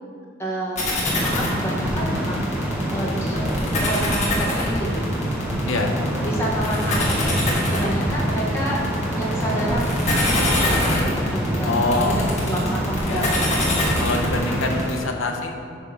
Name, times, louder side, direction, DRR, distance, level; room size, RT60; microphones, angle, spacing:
voice 1, 0.4-0.9 1.2-3.5 3.8-5.2 6.2-7.4 7.7-13.6, right 1 dB, 15° left, -4 dB, 1.1 m, -29 dB
sound 1, 0.8-15.0, left 2 dB, 35° left, 1.8 m, -25 dB
sound 2, 1.1-14.8, equal, 5° right, 0.6 m, -26 dB
voice 2, 5.7-6.0 11.6-12.2 13.1-13.3 14.0-15.5, left 2 dB, 80° left, 2 dB, 0.9 m, -24 dB
9.6 x 3.7 x 6.0 m, 2.3 s
head